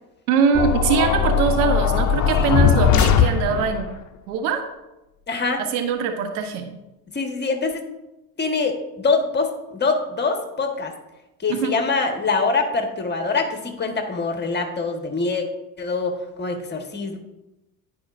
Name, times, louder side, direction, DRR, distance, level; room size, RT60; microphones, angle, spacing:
voice 1, 0.3-3.9 4.3-4.6 5.6-6.7 11.5-11.7, right 6 dB, 80° right, 6 dB, 1.0 m, -22 dB
sound 1, 0.5-3.9, left 7 dB, 40° left, 0.6 m, -19 dB
voice 2, 5.3-5.6 7.1-7.8 8.4-10.9 11.4-15.4 15.8-17.2, left 4 dB, 25° left, 4 dB, 1.2 m, -24 dB
11.0 x 4.8 x 2.5 m, 0.98 s
hypercardioid pair, 75°, 44 cm